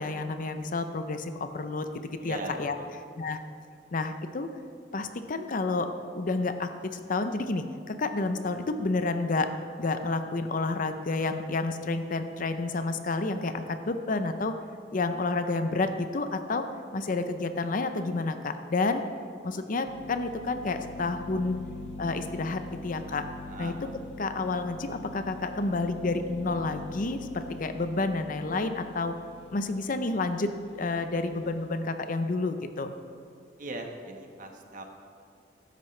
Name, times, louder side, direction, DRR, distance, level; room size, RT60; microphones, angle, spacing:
voice 1, 0.0-2.7 3.2-3.4 3.9-4.5 4.9-14.6 14.9-19.1 19.4-21.6 22.0-23.3 23.6-23.9 24.2-29.2 29.5-32.9, left 3 dB, 50° left, 9 dB, 0.6 m, -30 dB
voice 2, 2.2-3.0 23.5-23.8 33.6-34.8, right 2 dB, 50° right, 3 dB, 1.3 m, -39 dB
sound 1, 19.9-31.7, left 2 dB, 75° left, 0.9 m, -44 dB
15.5 x 12.5 x 3.3 m, 2.3 s
head